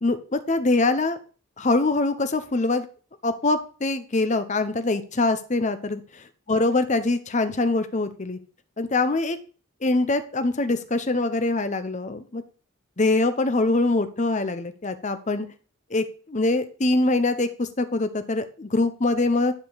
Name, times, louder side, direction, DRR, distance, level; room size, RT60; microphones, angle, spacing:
voice 1, 0.0-1.2 1.6-2.9 3.2-8.4 8.8-9.4 9.8-12.4 13.0-15.5 15.9-19.5, left 2 dB, 35° left, 10 dB, 0.7 m, -24 dB
10.5 x 5.0 x 4.0 m, 0.38 s
head